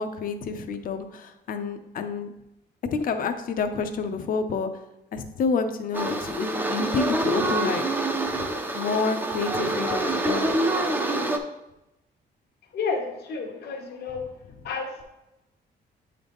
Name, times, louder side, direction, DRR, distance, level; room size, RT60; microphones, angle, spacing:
voice 1, 0.0-2.3 2.9-4.7 5.1-7.8 8.4-8.5 8.7-10.5, left 5 dB, 55° left, 8 dB, 0.6 m, -28 dB
sound 1, 5.9-11.4, right 2 dB, 10° right, 0.5 m, -26 dB
voice 2, 12.7-14.3 14.6-15.0, left 4 dB, 70° left, 1 dB, 1.0 m, -31 dB
8.2 x 3.9 x 3.5 m, 0.91 s
cardioid pair, 145°, 17 cm